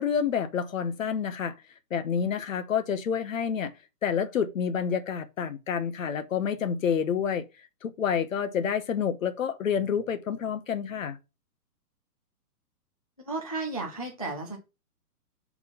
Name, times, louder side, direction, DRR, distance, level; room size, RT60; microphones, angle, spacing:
voice 1, 0.0-1.5 1.9-3.7 4.0-7.4 7.8-11.2, left 7 dB, 55° left, 1.0 m, -28 dB
voice 2, 13.2-14.6, right 3 dB, 25° left, 0.5 m, -33 dB
4.7 x 4.2 x 5.5 m
hypercardioid pair, 175°, 48 cm